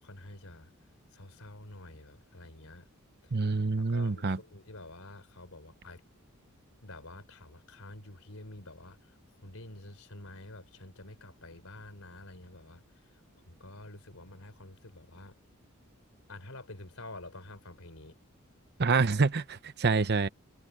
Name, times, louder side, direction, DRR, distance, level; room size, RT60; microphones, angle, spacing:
voice 1, 0.0-0.7 1.1-2.9 3.2-3.3 3.8-6.0 6.8-12.8 13.5-15.4 16.3-18.2, left 2 dB, 75° left, 4.2 m, -48 dB
voice 2, 3.3-4.4 18.8-20.3, right 4 dB, 50° right, 0.9 m, -27 dB
head